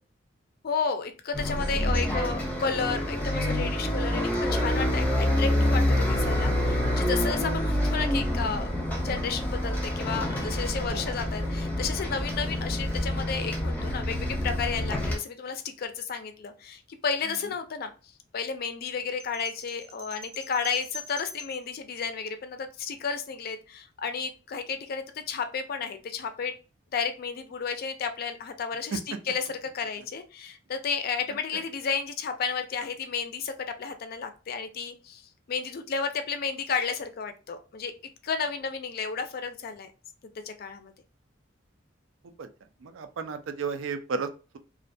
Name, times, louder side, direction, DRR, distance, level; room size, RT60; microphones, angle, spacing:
voice 1, 0.6-8.7 9.0-17.9 18.3-26.5 26.9-29.0 29.3-29.4 29.7-33.5 33.8-35.2 35.5-37.9 38.2-39.9 40.2-40.9, left 5 dB, 50° left, 8 dB, 0.4 m, -32 dB
Bus, 1.3-15.2, left 1 dB, 10° left, 0.7 m, -27 dB
sound 1, 19.2-21.7, left 2 dB, 30° right, 0.5 m, -43 dB
voice 2, 42.8-44.6, right 5 dB, 90° right, 8 dB, 0.4 m, -34 dB
2.4 x 2.1 x 2.5 m, 0.33 s
head